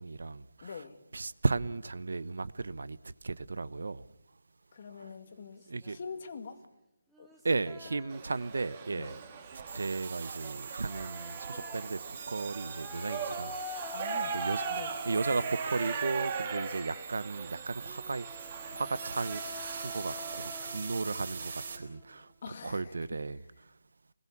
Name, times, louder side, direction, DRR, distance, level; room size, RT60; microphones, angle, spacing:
voice 1, 0.0-0.4 1.1-3.0 3.2-4.0 5.7-6.0 7.4-9.2 9.7-12.0 12.3-13.5 14.3-14.6 15.1-18.3 18.7-19.4 19.7-22.3 22.6-23.4, right 3 dB, 70° right, 17 dB, 0.9 m, -34 dB
voice 2, 0.6-1.0 4.7-6.6 7.2-7.3 9.0-9.2 13.9-14.4 14.7-14.9 22.4-23.0, left 5 dB, 35° left, 8 dB, 1.8 m, -44 dB
sound 1, 5.3-6.2 7.1-8.4 8.8-9.4 10.4-17.3 17.8-22.1, left 1 dB, ahead, 1.7 m, -47 dB
Shout / Livestock farm animals working animals, 8.1-20.7, right 5 dB, 20° right, 2.1 m, -40 dB
sound 2, 9.5-21.8, right 5 dB, 45° right, 4.0 m, -43 dB
25.5 x 21.0 x 7.3 m, 0.87 s
hypercardioid pair, 175°, 0 cm